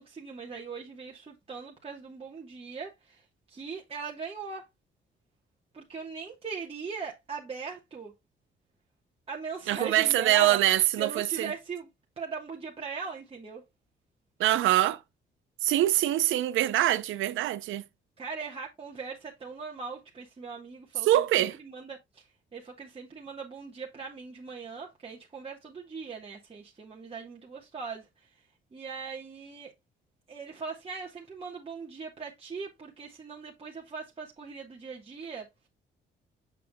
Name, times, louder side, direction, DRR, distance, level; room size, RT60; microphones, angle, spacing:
voice 1, 0.0-4.7 5.7-8.1 9.3-10.6 11.0-11.9 12.2-13.6 18.2-28.4 28.7-29.7 30.3-35.7, right 5 dB, 30° right, 1.4 m, -40 dB
voice 2, 9.7-11.5 14.4-15.0 15.6-17.8 21.0-21.6, right 14 dB, 80° right, 0.6 m, -24 dB
7.1 x 5.7 x 2.3 m
cardioid pair, 90°, 20 cm